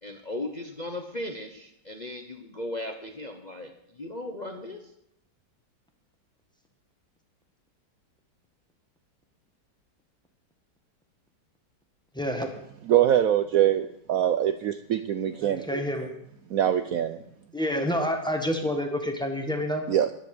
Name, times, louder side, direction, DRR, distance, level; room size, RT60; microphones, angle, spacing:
voice 1, 0.0-4.9, left 1 dB, 30° left, 4 dB, 0.9 m, -37 dB
voice 2, 12.2-12.5 15.4-16.1 17.5-19.8, equal, 5° left, 3 dB, 1.5 m, -28 dB
voice 3, 12.9-15.9 16.5-17.2 19.9-20.1, right 11 dB, 70° right, 10 dB, 0.9 m, -23 dB
14.0 x 11.0 x 5.0 m, 0.78 s
omnidirectional pair, 1.9 m